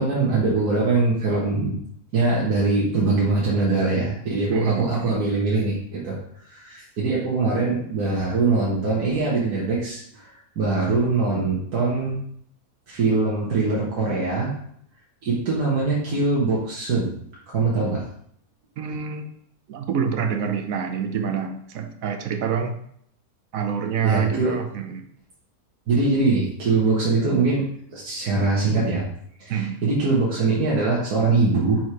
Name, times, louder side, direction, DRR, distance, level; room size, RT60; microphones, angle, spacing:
voice 1, 0.0-1.8 2.1-6.2 6.5-12.2 12.9-14.5 15.2-17.1 17.5-18.0 24.0-24.6 25.9-27.6 27.9-29.1 29.4-31.8, right 3 dB, 85° right, -6 dB, 1.7 m, -22 dB
voice 2, 4.5-5.3 18.8-19.3 19.7-22.7 23.5-25.1 29.5-29.8, right 7 dB, 70° right, 6 dB, 1.1 m, -26 dB
4.5 x 4.5 x 4.7 m, 0.67 s
omnidirectional pair, 1.6 m